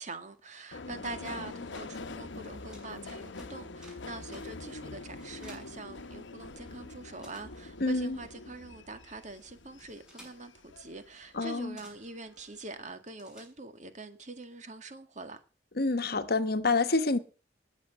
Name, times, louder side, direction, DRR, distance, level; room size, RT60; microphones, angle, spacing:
voice 1, 0.0-15.4, right 3 dB, 40° right, 1.9 m, -44 dB
Subway metro underground, 0.7-11.4 11.8-12.5 12.8-12.9, left 3 dB, 80° left, 0.9 m, -45 dB
sound 1, 1.2-6.6 6.9-14.0, equal, 5° right, 6.5 m, -59 dB
voice 2, 7.8-8.2 11.3-11.8 15.8-17.2, left 3 dB, 55° left, 1.2 m, -27 dB
20.0 x 7.2 x 6.8 m
head